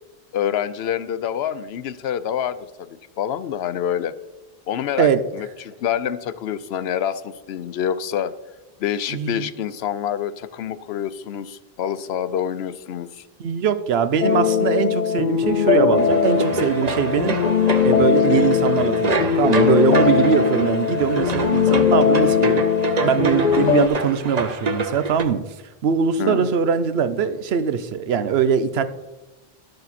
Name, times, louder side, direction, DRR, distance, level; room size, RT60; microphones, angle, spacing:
voice 1, 0.3-4.1 4.7-8.3 8.8-13.3 26.2-26.5, left 9 dB, 85° left, 14 dB, 0.9 m, -27 dB
voice 2, 9.1-9.5 13.4-17.4 17.8-22.7 23.0-25.4 25.8-28.8, right 7 dB, 80° right, 12 dB, 0.9 m, -21 dB
sound 1, 14.2-23.9, left 7 dB, 55° left, 0.6 m, -20 dB
sound 2, 16.0-25.2, right 3 dB, 45° right, 0.9 m, -27 dB
11.5 x 6.7 x 4.2 m, 1.1 s
omnidirectional pair, 1.0 m